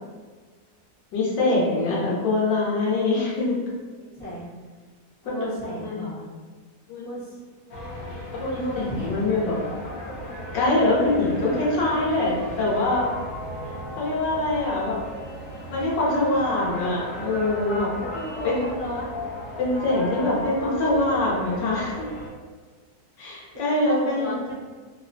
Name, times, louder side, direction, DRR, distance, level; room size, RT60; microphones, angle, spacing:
voice 1, 1.1-3.6 5.2-6.1 6.9-7.1 8.5-9.6 10.5-13.1 14.0-15.0 15.7-17.9 18.4-18.6 19.6-22.1 23.2-24.3, left 2 dB, 85° left, -5 dB, 1.5 m, -24 dB
voice 2, 4.2-4.5 5.2-6.3 7.0-7.4 8.4-9.1 18.0-19.2 23.7-24.5, equal, 30° left, -13 dB, 0.4 m, -34 dB
sound 1, 7.7-22.3, left 1 dB, 60° left, 1.0 m, -36 dB
3.5 x 2.0 x 2.6 m, 1.4 s
omnidirectional pair, 1.9 m